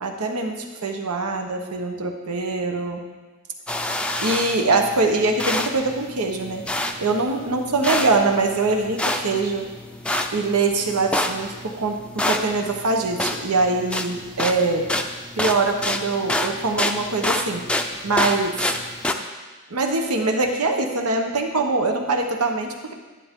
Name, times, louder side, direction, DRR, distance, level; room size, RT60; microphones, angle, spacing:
voice 1, 0.0-3.0 4.2-6.6 7.0-9.7 10.3-14.9 15.4-17.6 18.0-18.6 19.7-22.9, right 3 dB, 85° right, 4 dB, 1.2 m, -23 dB
sound 1, 3.7-19.1, left 1 dB, 5° left, 0.5 m, -28 dB
10.5 x 10.0 x 3.7 m, 1.3 s
head